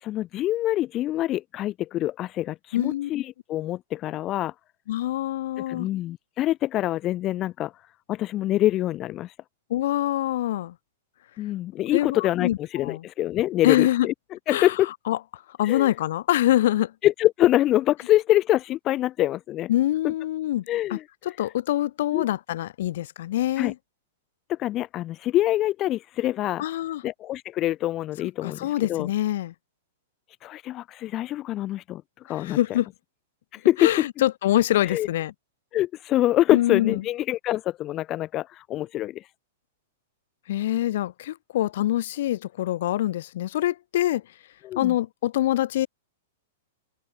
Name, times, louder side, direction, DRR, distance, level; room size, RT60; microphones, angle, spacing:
voice 1, 0.0-4.5 5.7-7.7 8.1-9.3 11.4-14.1 14.5-14.9 15.6-15.9 17.0-19.7 20.0-20.1 20.7-21.0 22.1-22.3 23.6-23.7 24.5-26.6 27.0-29.1 30.4-32.6 33.5-33.9 34.8-35.1 35.7-39.3 44.6-44.9, left 14 dB, 35° left, 1.4 m, -25 dB
voice 2, 2.7-3.1 4.9-5.9 9.7-10.7 11.9-13.0 13.6-14.1 14.5-14.7 15.1-16.9 19.7-20.6 20.9-21.0 21.2-23.7 26.6-27.0 28.4-29.5 32.4-32.9 33.8-35.3 36.5-37.0 40.5-44.2 44.8-45.9, left 13 dB, 60° left, 2.5 m, -25 dB
figure-of-eight pair, 105°, 0 cm